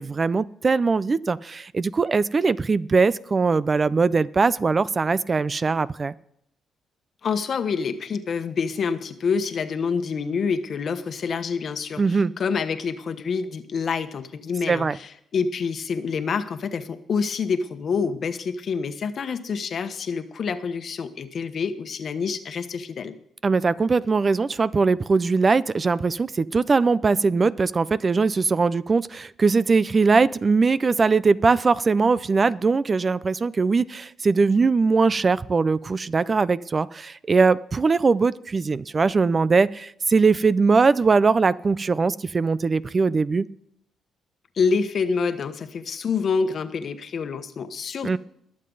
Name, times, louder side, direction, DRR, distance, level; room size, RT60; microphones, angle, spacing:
voice 1, 0.0-6.1 12.0-12.3 14.7-15.0 23.4-43.5 48.0-48.2, right 4 dB, 35° right, 18 dB, 0.4 m, -21 dB
voice 2, 7.2-23.1 44.6-48.2, left 5 dB, 55° left, 9 dB, 1.2 m, -27 dB
21.0 x 7.6 x 4.0 m, 0.73 s
cardioid pair, 90°, 0 cm